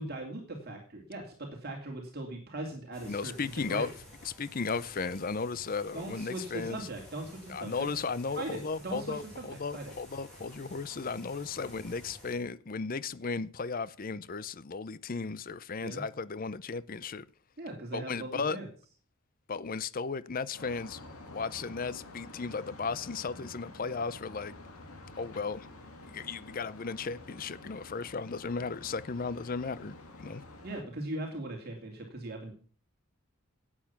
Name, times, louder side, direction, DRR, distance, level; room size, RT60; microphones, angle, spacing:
voice 1, 0.0-3.9 5.9-7.9 8.4-9.9 11.7-11.8 15.8-16.0 17.6-18.7 30.6-32.5, right 2 dB, 45° right, 2.6 m, -40 dB
sound 1, 2.9-12.4, left 1 dB, 5° left, 7.5 m, -52 dB
voice 2, 3.1-3.9 4.2-6.8 7.5-17.2 17.9-18.6 19.5-21.0 21.3-24.5 25.1-25.7 26.0-30.4, left 4 dB, 40° left, 0.5 m, -35 dB
sound 2, 20.5-30.8, left 2 dB, 90° left, 2.7 m, -49 dB
12.0 x 8.8 x 5.8 m
head